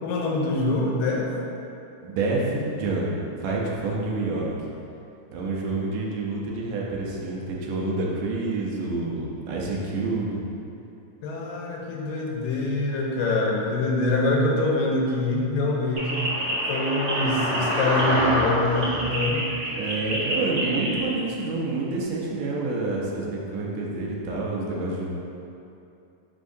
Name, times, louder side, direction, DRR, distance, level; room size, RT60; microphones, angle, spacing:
voice 1, 0.0-1.3 11.2-16.2 16.7-19.5, left 2 dB, 75° left, -1 dB, 2.4 m, -25 dB
voice 2, 2.0-3.1 3.4-4.5 5.3-10.4 19.8-25.1, right 3 dB, 75° right, -3 dB, 2.2 m, -28 dB
sound 1, 16.0-21.0, equal, 55° right, 1.2 m, -26 dB
10.0 x 4.3 x 2.7 m, 2.8 s
omnidirectional pair, 4.3 m